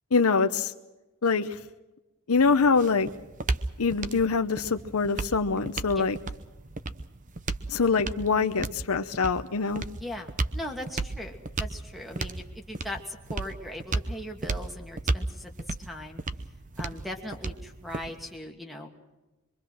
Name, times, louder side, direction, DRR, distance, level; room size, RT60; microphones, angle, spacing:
voice 1, 0.1-0.7 1.2-1.6 2.3-3.1 3.8-6.2 7.7-9.8, left 4 dB, 80° left, 8 dB, 0.8 m, -24 dB
sound 1, 2.3-18.4, right 3 dB, 35° right, 0.9 m, -34 dB
voice 2, 10.0-15.5 15.8-16.2 16.8-18.9, left 1 dB, ahead, 3 dB, 2.4 m, -39 dB
24.5 x 24.0 x 6.2 m, 1.1 s
head